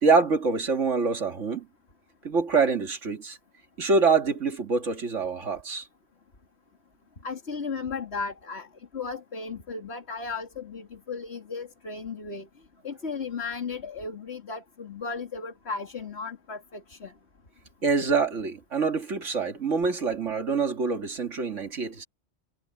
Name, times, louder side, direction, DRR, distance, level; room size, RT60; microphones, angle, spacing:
voice 1, 0.0-1.7 2.2-3.4 3.8-5.9 17.8-22.0, right 4 dB, 75° right, 2.3 m, -25 dB
voice 2, 7.2-8.7 8.9-12.5 12.8-17.1, left 4 dB, 60° left, 2.7 m, -35 dB
omnidirectional pair, 1.3 m